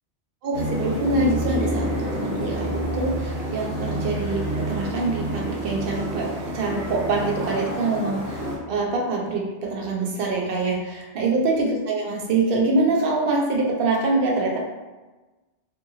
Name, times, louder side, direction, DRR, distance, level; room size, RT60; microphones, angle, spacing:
voice 1, 0.4-14.6, right 3 dB, 60° right, -2 dB, 0.8 m, -25 dB
sound 1, 0.5-8.6, equal, 85° right, 1.1 m, -28 dB
2.7 x 2.5 x 2.7 m, 1.2 s
omnidirectional pair, 1.2 m